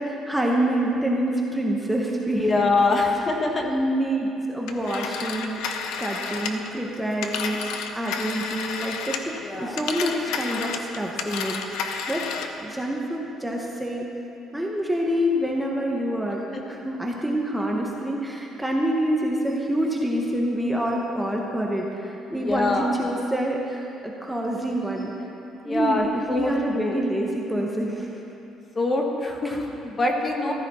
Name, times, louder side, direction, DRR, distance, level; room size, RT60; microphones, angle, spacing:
voice 1, 0.0-2.6 3.0-3.2 3.6-14.1 14.5-25.1 25.6-28.2 29.4-29.5 30.4-30.5, right 1 dB, 5° right, -2 dB, 1.0 m, -27 dB
voice 2, 2.4-3.6 9.4-9.8 22.3-23.0 25.6-27.0 28.7-30.5, left 2 dB, 25° left, 2 dB, 1.2 m, -24 dB
Telephone, 4.7-9.4 9.7-12.6, left 5 dB, 85° left, 0.9 m, -31 dB
14.5 x 13.0 x 4.2 m, 2.9 s
cardioid pair, 155°, 0 cm